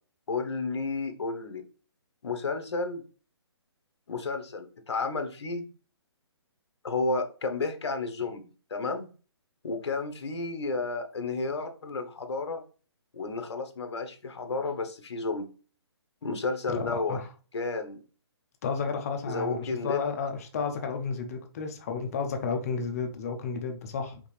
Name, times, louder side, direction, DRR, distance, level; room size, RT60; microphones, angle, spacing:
voice 1, 0.3-1.6 2.2-3.0 4.1-5.7 6.8-8.4 8.7-9.1 9.6-12.6 13.1-15.5 16.2-17.2 17.5-18.0 19.3-20.0, left 3 dB, 75° left, 0.9 m, -32 dB
voice 2, 16.7-17.3 18.6-24.2, left 5 dB, 35° left, 0.7 m, -32 dB
5.0 x 2.8 x 3.3 m
hypercardioid pair, 155°, 15 cm